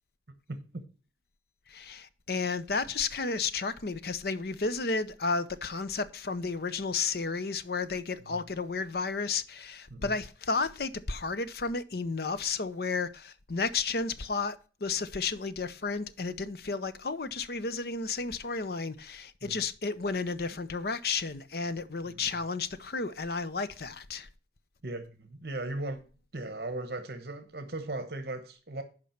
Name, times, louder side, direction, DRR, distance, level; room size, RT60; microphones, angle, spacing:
voice 1, 1.7-24.3, left 4 dB, 55° left, 0.7 m, -32 dB
voice 2, 22.1-22.4 24.8-26.0 26.3-28.8, right 2 dB, 55° right, 1.0 m, -37 dB
8.4 x 5.3 x 5.8 m
head